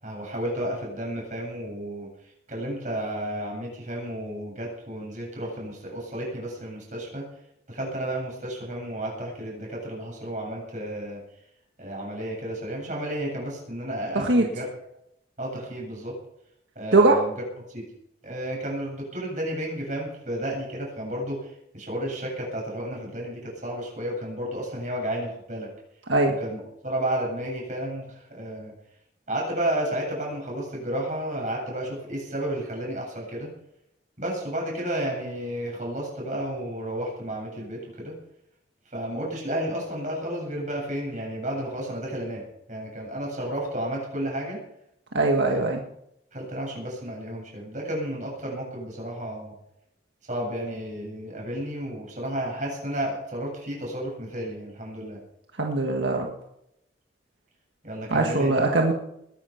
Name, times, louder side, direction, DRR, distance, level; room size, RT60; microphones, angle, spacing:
voice 1, 0.0-2.1 2.5-7.2 7.7-11.2 11.8-14.7 15.4-16.1 16.7-17.3 17.7-17.8 18.2-25.7 26.4-28.7 29.3-33.5 34.2-38.1 38.9-42.4 42.7-44.6 45.4-45.7 46.3-49.5 50.3-55.2 57.8-58.9, right 1 dB, 40° right, -2 dB, 8.0 m, -32 dB
voice 2, 45.1-45.8 55.6-56.3 58.1-58.9, right 2 dB, 80° right, 2 dB, 1.7 m, -21 dB
21.0 x 10.5 x 5.8 m, 0.78 s
head